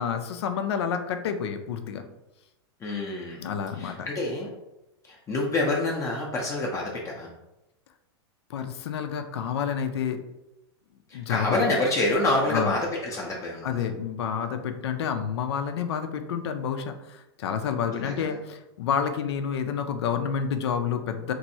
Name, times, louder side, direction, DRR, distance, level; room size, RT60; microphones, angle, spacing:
voice 1, 0.0-2.0 3.4-4.1 8.5-10.2 11.1-11.8 12.5-12.8 13.6-21.3, left 7 dB, 80° left, 7 dB, 0.4 m, -29 dB
voice 2, 2.8-3.4 3.7-4.5 5.1-7.3 11.1-13.8 17.9-18.4, left 2 dB, 20° left, -2 dB, 0.5 m, -27 dB
3.0 x 2.6 x 2.7 m, 0.94 s
hypercardioid pair, 120°, 14 cm